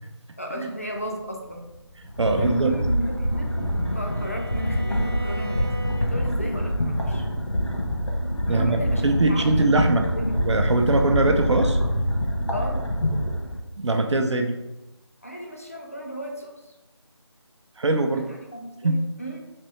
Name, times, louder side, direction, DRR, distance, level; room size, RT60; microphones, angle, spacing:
voice 1, 0.4-1.7 2.4-7.3 8.5-10.6 12.5-12.9 15.2-16.6 18.1-19.4, right 1 dB, 30° left, 1 dB, 0.4 m, -34 dB
Thunder, 0.7-13.3, left 1 dB, 15° right, 0.6 m, -42 dB
sound 1, 2.0-13.6, equal, 90° left, 1.1 m, -26 dB
voice 2, 2.2-2.8 8.5-10.1 10.4-11.8 13.8-14.6 17.8-18.2 18.8-19.0, right 2 dB, 75° right, 5 dB, 0.6 m, -22 dB
Bowed string instrument, 2.5-6.4, right 1 dB, 55° right, 0.9 m, -41 dB
3.3 x 3.1 x 3.1 m, 1.0 s
figure-of-eight pair, 175°, 15 cm